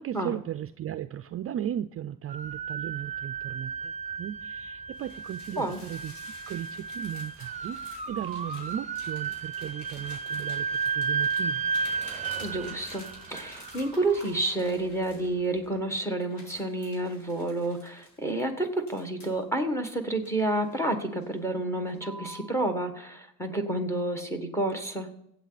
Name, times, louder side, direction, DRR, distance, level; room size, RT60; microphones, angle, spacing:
voice 1, 0.0-6.1 6.5-11.6, right 10 dB, 40° right, 12 dB, 0.4 m, -36 dB
sound 1, 2.3-15.4, right 5 dB, 20° right, 0.8 m, -34 dB
sound 2, 4.9-15.7 16.2-19.4 19.9-20.9 21.2-21.5 21.9-22.5, left 1 dB, 50° left, 5.7 m, -50 dB
voice 2, 12.4-25.1, right 2 dB, 10° left, 6 dB, 1.6 m, -30 dB
24.5 x 8.3 x 4.1 m, 0.78 s
cardioid pair, 165°, 35 cm